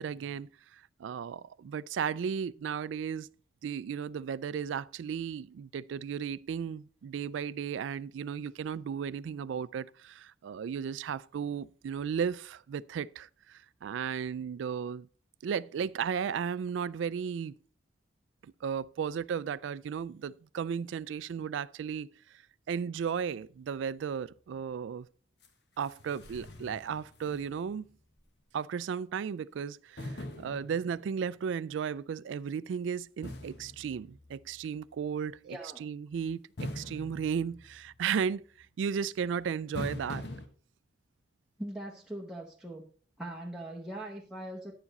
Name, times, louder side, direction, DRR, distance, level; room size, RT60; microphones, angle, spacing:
voice 1, 0.0-3.3 3.6-15.1 15.4-17.6 18.4-22.1 22.7-25.1 25.8-27.9 28.5-38.4 38.8-40.3, right 7 dB, 85° right, 0.3 m, -35 dB
sound 1, 25.4-25.5 25.8-27.9 28.2-28.3 30.0-31.3 33.2-34.6 36.6-38.1 39.7-40.5, left 1 dB, 65° left, 1.3 m, -43 dB
voice 2, 35.5-35.9 41.6-42.9 43.2-44.7, right 1 dB, 5° right, 0.9 m, -41 dB
9.9 x 7.2 x 4.1 m
head